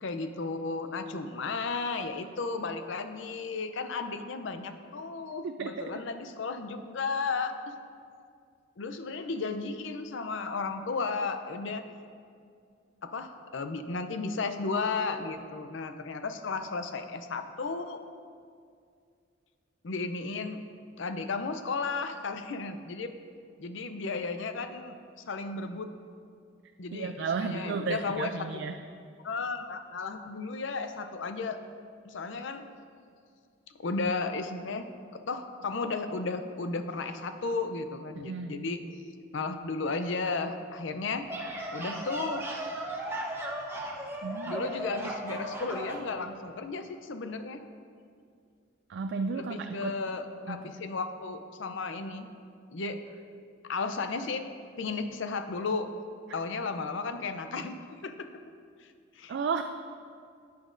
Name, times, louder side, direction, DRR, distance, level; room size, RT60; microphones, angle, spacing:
voice 1, 0.0-7.7 8.8-11.8 13.0-18.0 19.8-20.6 21.0-23.1 23.6-24.9 25.3-25.9 26.8-28.6 29.2-31.6 32.0-32.7 33.8-34.9 35.3-38.8 39.3-41.2 41.7-42.4 44.5-47.6 49.4-52.3 52.7-53.0 53.6-54.4 54.8-55.9 56.3-57.8 58.0-58.3 59.2-59.4, left 4 dB, 70° left, 8 dB, 0.5 m, -34 dB
voice 2, 26.9-28.8 38.1-38.6 44.2-44.7 48.9-50.0 50.5-50.7 59.3-59.6, right 5 dB, 60° right, 7 dB, 0.3 m, -33 dB
sound 1, 41.1-46.1, right 1 dB, 10° right, 0.9 m, -36 dB
11.0 x 9.4 x 2.6 m, 2.3 s
head